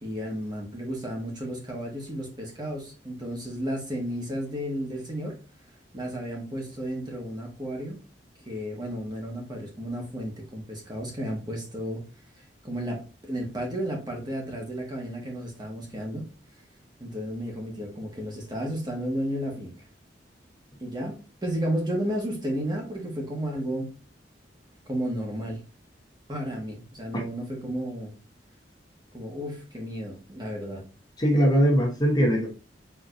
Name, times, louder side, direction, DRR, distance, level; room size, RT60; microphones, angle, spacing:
voice 1, 0.0-5.4 5.9-8.0 8.4-12.0 12.6-16.3 17.0-19.7 20.8-23.9 24.9-25.6 26.3-28.1 29.1-30.8, equal, 25° right, 1.4 m, -33 dB
voice 2, 31.2-32.5, equal, 25° left, 1.0 m, -21 dB
4.5 x 3.8 x 2.5 m
head